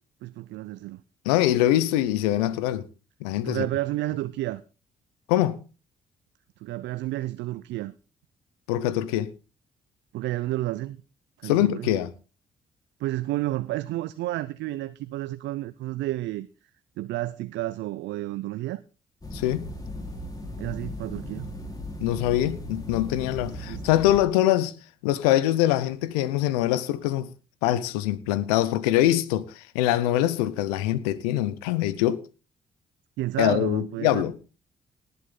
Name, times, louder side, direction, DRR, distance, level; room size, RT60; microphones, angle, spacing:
voice 1, 0.2-1.0 3.4-4.6 6.6-7.9 10.1-11.0 11.4-11.9 13.0-16.5 17.0-18.8 20.6-21.5 23.6-23.8 33.2-34.4, right 16 dB, 70° right, 0.6 m, -31 dB
voice 2, 1.2-2.8 3.2-3.7 5.3-5.6 8.7-9.3 11.4-12.1 19.3-19.7 22.0-24.7 25.0-27.3 27.6-32.2 33.4-34.4, left 13 dB, 85° left, 0.8 m, -23 dB
sound 1, 19.2-24.2, left 1 dB, 20° left, 4.2 m, -37 dB
18.5 x 8.2 x 3.8 m
hypercardioid pair, 45°, 19 cm